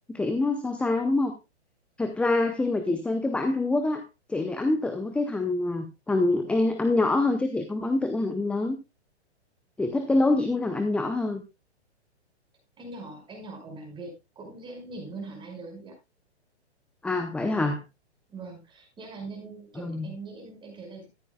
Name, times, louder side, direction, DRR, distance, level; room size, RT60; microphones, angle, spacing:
voice 1, 0.1-1.3 2.0-4.0 4.3-8.8 9.8-11.4 17.0-17.8 19.8-20.1, left 2 dB, 5° left, 7 dB, 0.7 m, -25 dB
voice 2, 12.8-16.0 18.3-21.1, right 3 dB, 15° right, 2 dB, 5.4 m, -41 dB
14.5 x 11.0 x 2.3 m, 0.24 s
hypercardioid pair, 135°, 35 cm